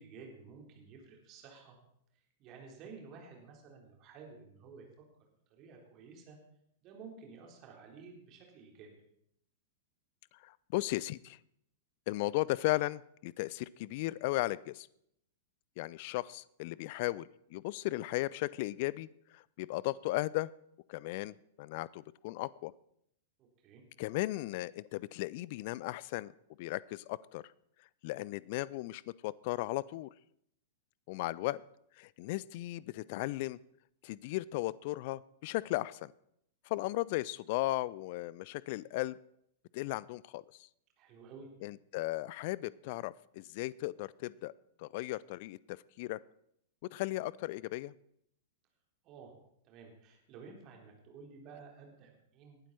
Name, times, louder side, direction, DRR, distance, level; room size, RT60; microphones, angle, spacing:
voice 1, 0.0-1.8 2.4-4.9 5.5-6.4 6.8-8.9 23.4-23.8 41.0-41.5 49.0-49.3 49.6-52.6, right 5 dB, 35° right, 1 dB, 4.0 m, -52 dB
voice 2, 10.4-11.4 12.1-14.9 15.8-19.1 19.3-20.5 20.9-22.7 24.0-26.3 26.6-27.4 28.0-30.1 31.1-31.6 32.0-33.6 34.0-36.1 36.7-39.2 39.7-40.4 41.6-44.5 44.8-46.2 46.9-47.9, left 18 dB, 45° left, 22 dB, 0.4 m, -36 dB
19.5 x 12.0 x 4.3 m, 0.74 s
figure-of-eight pair, 95°, 0 cm